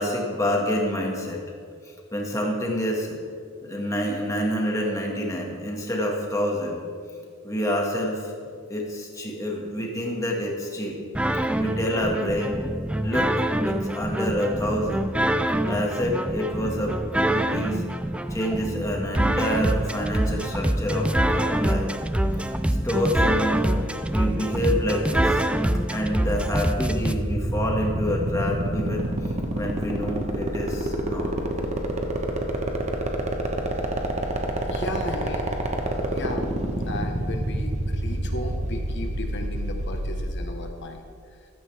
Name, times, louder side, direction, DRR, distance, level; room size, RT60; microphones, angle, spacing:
voice 1, 0.0-1.4 1.8-3.2 3.6-6.8 7.4-8.3 8.7-11.0 11.6-12.6 13.0-13.3 13.6-15.1 15.6-17.8 18.3-21.9 22.8-25.4 25.9-29.1 29.5-31.3, equal, 15° left, -1 dB, 1.9 m, -27 dB
sound 1, 11.1-27.1, right 1 dB, 5° right, 0.3 m, -25 dB
sound 2, 26.3-40.3, right 1 dB, 30° right, 1.2 m, -27 dB
voice 2, 34.7-35.6 36.1-36.5 36.9-41.4, left 1 dB, 55° left, 4 dB, 1.3 m, -35 dB
15.0 x 13.5 x 3.5 m, 2.2 s
head